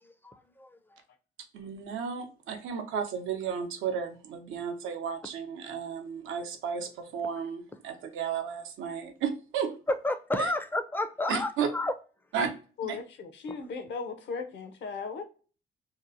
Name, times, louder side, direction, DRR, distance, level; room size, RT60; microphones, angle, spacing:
voice 1, 0.0-1.0 9.9-11.9 13.5-13.6, left 1 dB, 10° left, 0.4 m, -31 dB
voice 2, 1.5-9.7 10.4-10.5 11.3-11.7 12.3-12.5 12.8-13.0, right 7 dB, 85° right, 0.6 m, -33 dB
voice 3, 12.8-15.2, left 5 dB, 65° left, 0.6 m, -37 dB
2.8 x 2.0 x 2.5 m
cardioid pair, 90°, 20 cm